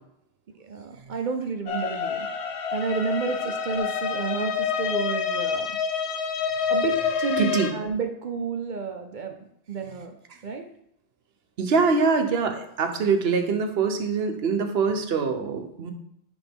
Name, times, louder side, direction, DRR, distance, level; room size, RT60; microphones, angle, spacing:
voice 1, 0.6-2.3 2.7-5.8 6.7-9.4 9.7-10.2 10.4-10.6, right 5 dB, 55° right, 5 dB, 0.7 m, -31 dB
sound 1, 1.7-7.7, left 6 dB, 75° left, 0.9 m, -27 dB
voice 2, 7.4-7.7 11.6-15.9, right 5 dB, 70° right, 6 dB, 1.0 m, -24 dB
9.9 x 3.5 x 3.5 m, 0.75 s
omnidirectional pair, 1.1 m